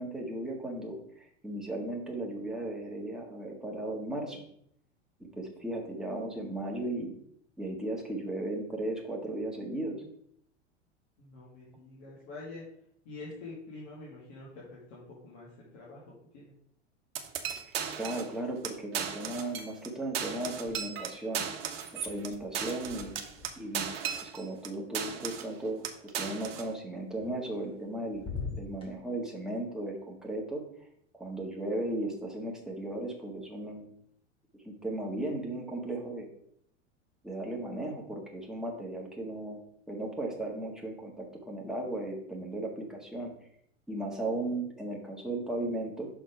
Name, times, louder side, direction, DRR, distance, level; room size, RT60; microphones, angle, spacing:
voice 1, 0.0-4.4 5.2-7.2 7.6-10.0 17.5-21.4 22.0-23.1 23.6-23.9 24.2-25.9 26.1-28.2 28.6-30.6 31.1-33.9 34.6-36.3 37.2-43.3 43.9-46.1, right 1 dB, ahead, -1 dB, 1.6 m, -36 dB
voice 2, 11.2-12.6 13.0-16.5, left 2 dB, 50° left, -6 dB, 2.2 m, -46 dB
sound 1, 17.1-18.3 18.6-18.7 18.9-19.9 20.1-24.7 24.9-25.5 25.8-26.7, right 7 dB, 55° right, 0.9 m, -36 dB
sound 2, 20.5-21.2 21.5-25.6 27.2-27.9 28.1-28.9, left 4 dB, 15° left, 2.4 m, -45 dB
6.1 x 4.5 x 5.0 m, 0.69 s
figure-of-eight pair, 85°, 36 cm